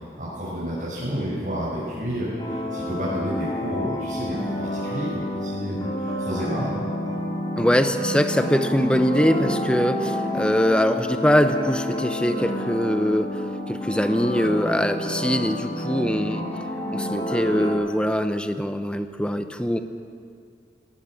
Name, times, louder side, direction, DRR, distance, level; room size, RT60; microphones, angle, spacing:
voice 1, 0.2-6.7, equal, 45° right, -9 dB, 6.2 m, -30 dB
sound 1, 2.4-17.7, left 1 dB, 25° left, 4.6 m, -29 dB
voice 2, 7.6-13.4 13.7-16.4 16.9-19.8, equal, 5° left, 8 dB, 0.9 m, -22 dB
19.5 x 19.5 x 7.7 m, 2.3 s
head